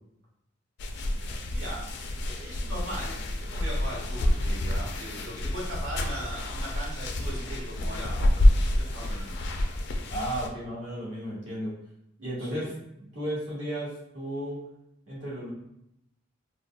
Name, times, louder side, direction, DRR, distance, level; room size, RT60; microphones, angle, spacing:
sound 1, 0.8-10.5, left 1 dB, 60° left, 0.4 m, -27 dB
voice 1, 1.5-1.9 2.3-9.4 12.4-12.7, equal, 90° right, -3 dB, 1.0 m, -39 dB
voice 2, 10.1-11.7 12.2-12.7 13.1-14.6 15.1-15.5, right 1 dB, 65° right, -8 dB, 1.4 m, -34 dB
3.9 x 2.2 x 2.2 m, 0.81 s
head